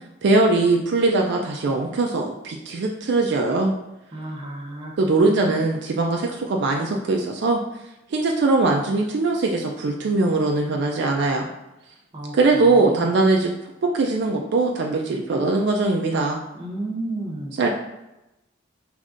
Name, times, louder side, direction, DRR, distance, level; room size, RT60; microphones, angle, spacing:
voice 1, 0.2-3.7 5.0-7.6 8.1-11.5 12.3-13.5 13.8-16.4 17.6-17.7, right 3 dB, 60° right, 1 dB, 0.4 m, -21 dB
voice 2, 4.1-5.6 12.1-12.4 12.6-13.1 16.5-17.5, right 2 dB, 25° right, -1 dB, 0.8 m, -32 dB
5.1 x 3.1 x 2.5 m, 0.95 s
head